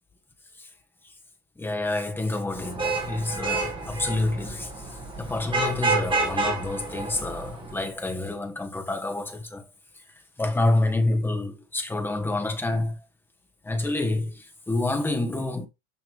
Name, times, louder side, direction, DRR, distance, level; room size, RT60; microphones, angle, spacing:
voice 1, 1.6-9.7 10.4-13.0 13.6-15.7, left 2 dB, 5° left, 1.3 m, -28 dB
Vehicle horn car horn honking / Traffic noise roadway noise, 2.6-7.8, right 3 dB, 15° right, 1.9 m, -29 dB
9.6 x 6.4 x 3.4 m
cardioid pair, 180°, 35 cm